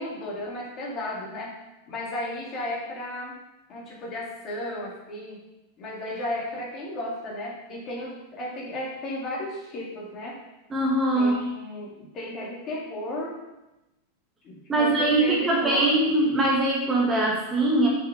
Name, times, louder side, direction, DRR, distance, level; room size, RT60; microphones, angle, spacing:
voice 1, 0.0-1.6 1.9-3.4 3.7-5.4 5.8-10.4 11.1-13.4 14.4-16.1, left 1 dB, 30° left, -4 dB, 2.6 m, -34 dB
voice 2, 10.7-11.5 14.7-17.9, right 2 dB, 15° right, -3 dB, 1.9 m, -22 dB
7.4 x 5.5 x 5.1 m, 0.97 s
figure-of-eight pair, 90°, 0 cm